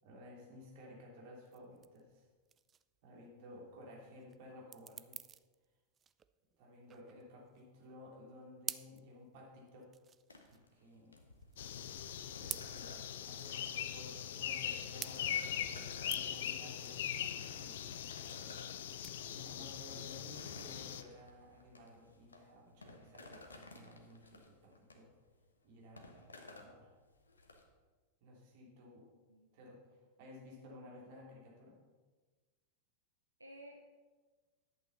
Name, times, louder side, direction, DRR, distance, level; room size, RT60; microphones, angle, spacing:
voice 1, 0.0-2.3 3.0-5.2 6.6-9.9 10.5-11.2 12.4-17.8 19.3-25.1 25.6-26.9 28.2-29.1 29.5-31.7, left 1 dB, 50° right, -2 dB, 3.0 m, -55 dB
sound 1, 1.4-21.2, right 8 dB, 25° right, 0.3 m, -51 dB
sound 2, 10.3-27.6, left 2 dB, 75° left, 1.1 m, -56 dB
sound 3, 11.6-21.0, left 10 dB, 55° left, 0.5 m, -41 dB
voice 2, 19.4-19.8 29.3-29.5 33.4-33.8, right 1 dB, 85° right, 2 dB, 0.8 m, -55 dB
10.5 x 8.6 x 4.1 m, 1.3 s
figure-of-eight pair, 90°, 0 cm